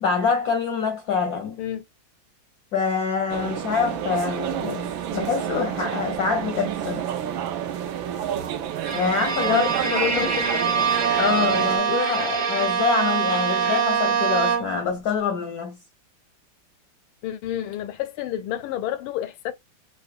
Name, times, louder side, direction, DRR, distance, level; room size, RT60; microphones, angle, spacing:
voice 1, 0.0-1.6 2.7-7.0 8.9-9.7 10.0-10.4 11.2-15.8, left 5 dB, 65° left, 0.9 m, -25 dB
sound 1, 3.3-11.8, right 10 dB, 80° right, 1.4 m, -30 dB
Bowed string instrument, 8.8-14.9, right 6 dB, 35° right, 0.8 m, -24 dB
voice 2, 9.5-10.9 17.2-19.5, left 11 dB, 85° left, 1.4 m, -29 dB
4.8 x 2.0 x 2.3 m
omnidirectional pair, 2.2 m